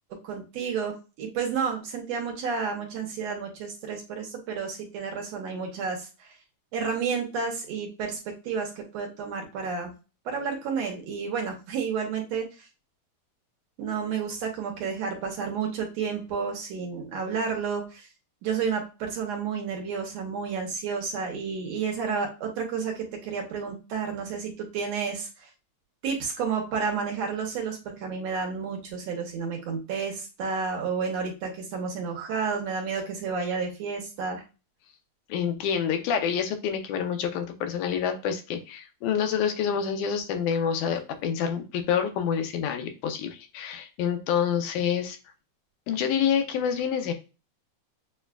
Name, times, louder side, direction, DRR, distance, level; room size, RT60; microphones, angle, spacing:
voice 1, 0.2-6.3 6.7-9.9 10.3-12.5 13.8-18.1 18.4-25.3 26.0-34.4, right 5 dB, 70° right, 1 dB, 1.9 m, -31 dB
voice 2, 35.3-45.2 45.9-47.1, left 7 dB, 85° left, 7 dB, 2.1 m, -27 dB
6.6 x 2.3 x 2.2 m, 0.30 s
omnidirectional pair, 3.4 m